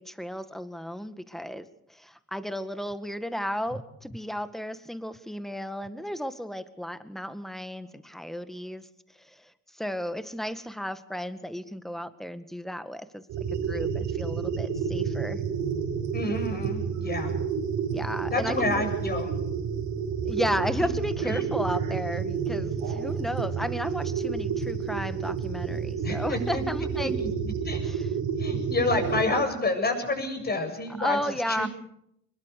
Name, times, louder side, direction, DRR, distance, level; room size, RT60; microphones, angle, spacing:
voice 1, 0.0-8.9 9.2-13.3 13.7-15.4 17.9-18.8 20.3-27.1 27.8-28.1 28.5-28.6 31.0-31.7, equal, ahead, 11 dB, 1.9 m, -34 dB
sound 1, 13.3-29.2, right 6 dB, 90° right, 5.5 m, -30 dB
voice 2, 16.1-17.4 18.3-19.4 20.7-20.8 21.2-21.4 26.0-26.6 27.0-27.3 27.6-27.8 28.4-31.2 31.5-31.7, left 2 dB, 30° left, 5 dB, 7.8 m, -29 dB
24.0 x 21.5 x 6.7 m, 0.73 s
cardioid pair, 90°, 30 cm